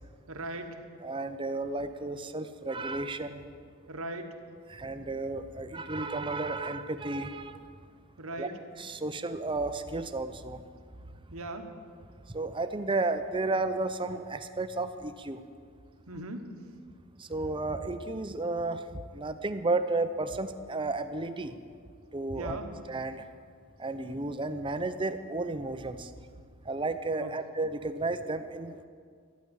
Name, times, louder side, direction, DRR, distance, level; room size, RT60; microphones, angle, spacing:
voice 1, 0.3-0.8 3.9-4.4 8.2-8.6 11.3-11.7 16.1-16.5 22.3-22.7 27.2-27.3, right 2 dB, 75° right, 6 dB, 1.3 m, -38 dB
voice 2, 1.0-3.4 4.7-7.7 8.4-8.5 8.8-10.6 12.3-15.4 17.2-21.6 22.1-22.6 22.9-23.3 23.8-26.1 26.6-28.9, right 2 dB, 25° right, 9 dB, 0.6 m, -33 dB
12.5 x 10.5 x 8.1 m, 2.1 s
head